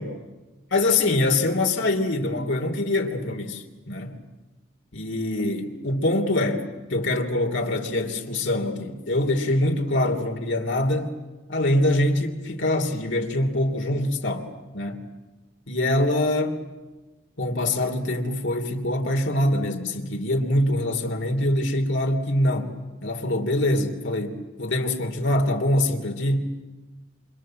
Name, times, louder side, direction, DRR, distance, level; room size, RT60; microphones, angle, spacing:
voice 1, 0.7-4.1 4.9-6.6 6.9-11.1 11.5-15.0 15.7-16.6 17.4-22.7 23.0-26.4, left 1 dB, 70° left, 3.2 m, -24 dB
28.0 x 27.0 x 7.7 m
head